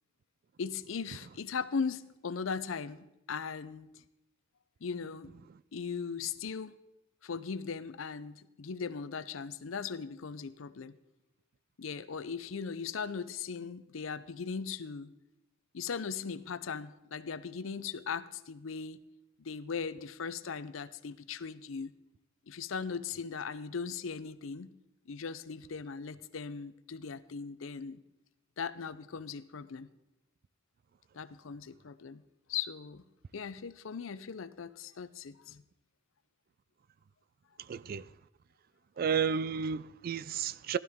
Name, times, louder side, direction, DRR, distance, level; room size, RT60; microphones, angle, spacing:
voice 1, 0.6-3.9 4.8-5.3 5.7-6.7 7.2-11.0 11.8-15.1 15.7-19.0 19.4-21.9 22.5-24.7 25.1-28.0 28.6-29.9 31.1-32.2 32.5-33.0 33.3-35.6, left 5 dB, 85° left, 0.6 m, -38 dB
voice 2, 37.6-38.1 39.0-40.8, right 6 dB, 50° right, 0.3 m, -32 dB
15.5 x 12.0 x 3.6 m
head